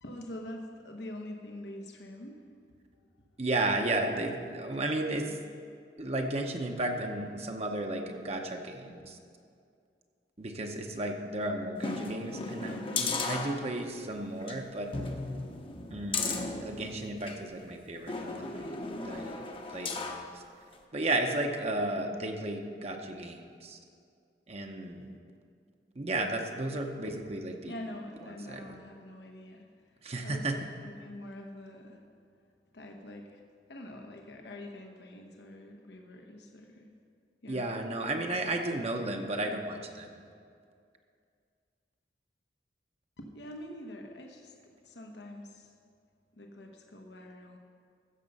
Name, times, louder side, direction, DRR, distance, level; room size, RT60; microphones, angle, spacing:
voice 1, 0.0-3.1 27.0-27.2 27.6-30.5 30.8-32.0 32.7-33.4 33.7-36.9 37.4-37.7 43.2-45.7 46.3-47.6, left 1 dB, 75° left, 2 dB, 1.0 m, -45 dB
voice 2, 3.4-5.4 6.0-9.2 10.4-14.9 15.9-18.8 19.0-20.4 20.9-23.8 24.5-25.2 26.0-27.7 28.5-28.7 30.0-30.6 37.5-40.1, right 2 dB, 35° right, 3 dB, 0.8 m, -34 dB
sound 1, 11.8-14.0 14.4-14.5 14.9-17.4 18.1-20.3 20.7-20.8, left 3 dB, 30° left, 0.9 m, -35 dB
15.0 x 6.7 x 5.4 m, 2.3 s
head